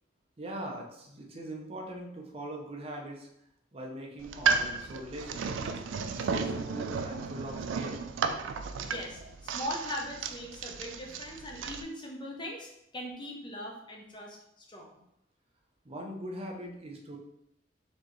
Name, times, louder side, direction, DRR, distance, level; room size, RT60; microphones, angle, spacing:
voice 1, 0.4-3.3 3.7-5.7 6.1-8.1 9.2-9.3 15.8-17.2, right 1 dB, 30° right, 0 dB, 0.7 m, -41 dB
sound 1, 4.2-11.8, right 5 dB, 80° right, 0.4 m, -33 dB
voice 2, 8.8-14.9, equal, 25° left, 0 dB, 0.8 m, -40 dB
4.3 x 3.0 x 3.1 m, 0.79 s
head